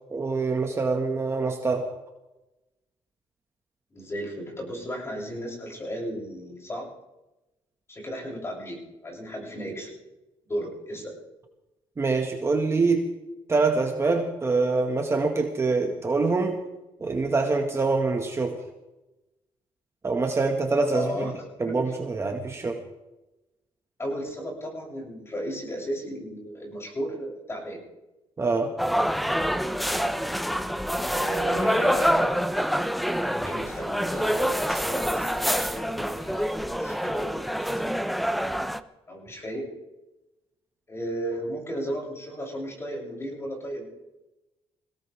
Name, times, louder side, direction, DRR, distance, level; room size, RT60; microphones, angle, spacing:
voice 1, 0.1-1.9 12.0-13.1 13.5-16.6 17.0-18.6 20.0-21.3 21.6-22.8 28.4-28.7, right 3 dB, 25° right, 3 dB, 1.8 m, -25 dB
voice 2, 3.9-6.9 7.9-10.0 10.5-11.1 20.9-21.8 24.0-27.8 29.1-29.4 29.7-30.0 31.0-32.3 33.3-38.0 39.1-39.6 40.9-43.8, equal, 25° left, -1 dB, 7.9 m, -34 dB
sound 1, 28.8-38.8, equal, ahead, 0.7 m, -26 dB
21.5 x 17.5 x 3.6 m, 0.98 s
cardioid pair, 120°, 11 cm